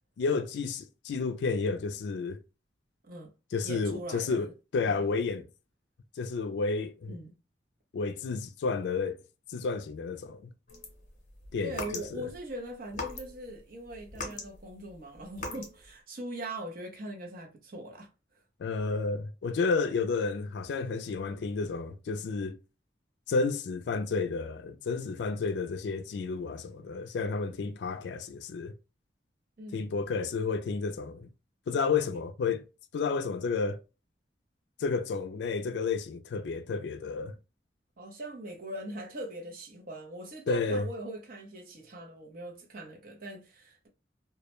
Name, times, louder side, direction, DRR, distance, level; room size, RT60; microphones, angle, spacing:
voice 1, 0.2-2.4 3.5-5.4 6.2-7.2 7.9-9.2 9.5-10.5 11.5-12.3 18.6-22.6 23.3-28.7 29.7-31.3 31.7-32.6 32.9-33.8 34.8-37.4 40.5-40.9, left 4 dB, 70° left, 0.3 m, -31 dB
voice 2, 3.6-4.5 4.9-5.0 7.1-7.3 11.6-18.1 29.6-29.9 38.0-43.9, right 1 dB, 55° right, 0.7 m, -41 dB
sound 1, 10.7-12.4 12.9-13.6 13.9-15.8, left 2 dB, 45° left, 0.7 m, -40 dB
2.2 x 2.1 x 2.9 m
head